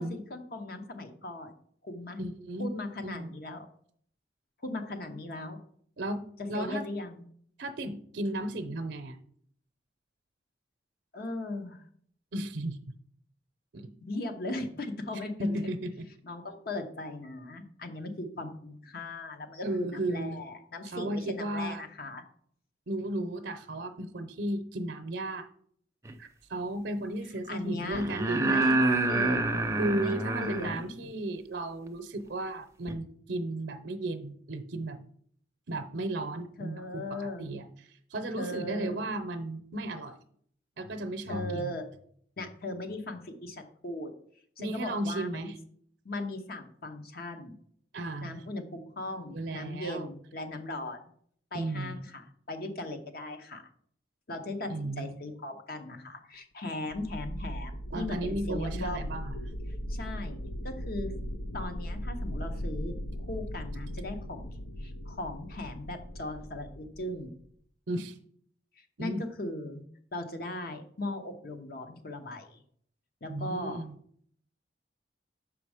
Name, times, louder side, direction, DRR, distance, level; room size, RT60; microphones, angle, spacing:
voice 1, 0.0-1.5 1.8-2.2 2.6-3.7 4.6-5.6 6.5-7.2 11.1-11.8 14.0-15.6 16.2-22.2 27.5-28.0 28.4-28.8 29.1-29.7 30.0-31.1 36.6-37.4 38.4-39.0 41.3-41.9 42.4-44.1 44.6-45.5 46.0-47.5 48.2-51.1 51.5-53.6 54.3-59.1 59.9-60.4 60.6-61.1 61.5-63.0 63.2-64.5 64.8-67.3 68.8-69.8 70.1-72.6 73.2-73.8, left 2 dB, 55° left, 5 dB, 0.9 m, -38 dB
voice 2, 2.2-2.7 3.0-3.4 6.0-6.2 6.5-6.8 7.6-9.2 12.3-12.8 13.7-13.9 15.4-16.0 19.6-20.4 20.8-21.8 22.9-25.5 26.2-29.0 29.8-35.0 35.7-40.2 40.8-41.8 44.6-45.5 47.9-48.4 49.3-50.1 51.5-52.0 54.7-55.2 57.9-59.4 67.9-68.2 69.0-69.2 73.3-73.9, right 1 dB, 70° right, 6 dB, 0.6 m, -34 dB
sound 1, 26.1-26.2 27.9-30.8 32.9-33.0, right 2 dB, 15° right, 0.5 m, -27 dB
sound 2, 56.9-67.5, equal, 80° left, 0.6 m, -38 dB
6.1 x 4.9 x 4.9 m, 0.62 s
head